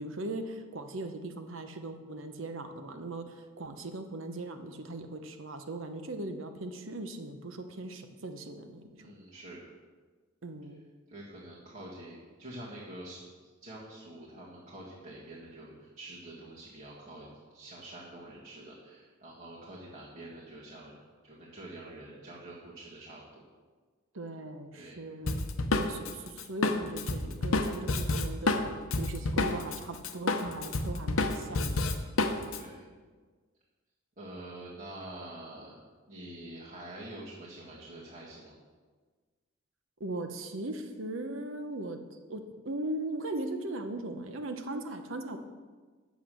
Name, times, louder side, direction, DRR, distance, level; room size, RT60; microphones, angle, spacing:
voice 1, 0.0-3.2 3.6-8.8 10.4-10.8 24.1-25.4 25.7-28.6 29.0-31.9 40.0-42.0 42.3-45.4, right 2 dB, 70° right, 7 dB, 0.9 m, -39 dB
voice 2, 9.0-9.6 11.1-13.3 13.6-20.9 21.2-23.4 24.7-25.0 32.6-32.8 34.2-35.7 36.1-38.6, right 1 dB, 45° right, -7 dB, 1.8 m, -46 dB
Drum kit, 25.3-29.8 30.0-32.6, left 2 dB, 85° left, 0.8 m, -29 dB
8.3 x 7.2 x 6.2 m, 1.4 s
head